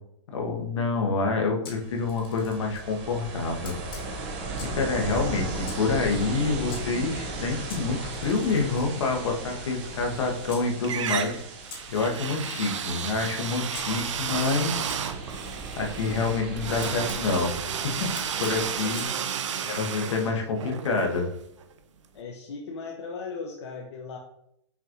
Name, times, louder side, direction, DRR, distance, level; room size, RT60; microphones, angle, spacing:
voice 1, 0.3-3.7 4.6-11.4 11.9-14.8 15.8-17.5 17.8-18.1 18.4-19.1 19.6-21.2, left 4 dB, 80° left, 1 dB, 1.1 m, -27 dB
Camera, 1.6-2.9 3.6-4.9 5.6-6.8 7.7-10.7 11.7-13.9 14.9-17.2 18.1-19.1, left 4 dB, 50° left, 1.0 m, -47 dB
Ocean, 1.7-19.1, right 3 dB, 25° right, 0.4 m, -37 dB
sound 1, 9.9-10.5 10.8-21.7, right 7 dB, 90° right, 0.5 m, -33 dB
voice 2, 16.1-16.5 18.9-19.1 20.0-20.4 21.0-21.1 22.1-24.2, left 4 dB, 65° left, 0 dB, 0.7 m, -39 dB
5.6 x 3.0 x 2.4 m, 0.74 s
hypercardioid pair, 180°, 15 cm